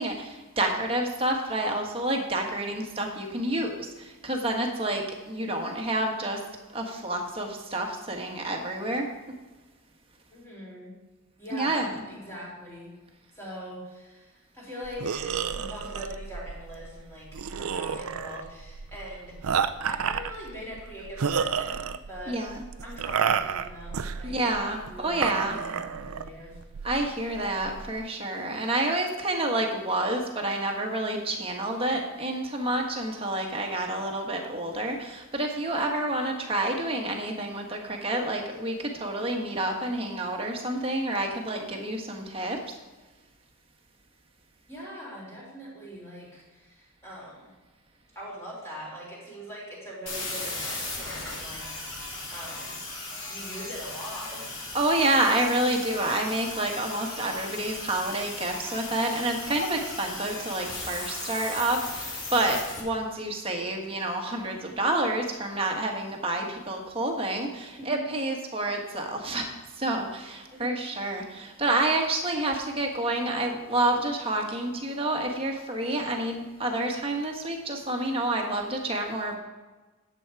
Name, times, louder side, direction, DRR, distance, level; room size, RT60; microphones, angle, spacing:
voice 1, 0.0-6.4 6.7-9.1 11.5-12.0 22.3-22.6 24.2-25.6 26.8-42.6 54.7-79.4, right 1 dB, 25° right, 2 dB, 1.4 m, -29 dB
voice 2, 10.3-10.9 11.4-12.9 13.3-22.4 22.8-24.4 24.9-26.6 44.7-47.5 48.2-52.8 53.3-54.5 67.7-68.2 70.5-70.7, equal, 10° left, -5 dB, 3.7 m, -42 dB
sound 1, 14.8-28.0, right 7 dB, 80° right, 0.5 m, -31 dB
sound 2, 50.1-62.8, left 2 dB, 55° left, 3.2 m, -37 dB
11.0 x 8.1 x 4.7 m, 1.2 s
head